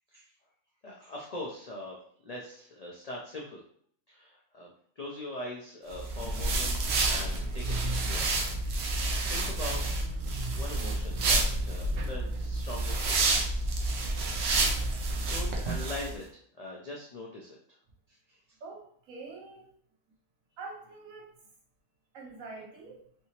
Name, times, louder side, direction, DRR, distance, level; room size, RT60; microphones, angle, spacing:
voice 1, 0.8-2.0 2.2-3.6 4.1-8.3 8.6-9.9 10.5-13.3 13.8-14.1 15.3-16.2 16.6-17.6 18.1-18.4, left 1 dB, 85° left, -2 dB, 0.3 m, -42 dB
sound 1, 5.9-16.1, right 2 dB, 65° right, 0.8 m, -29 dB
voice 2, 18.6-19.7 20.6-21.3 22.1-23.0, right 3 dB, 90° right, -1 dB, 1.3 m, -45 dB
3.3 x 2.8 x 2.9 m, 0.62 s
omnidirectional pair, 1.4 m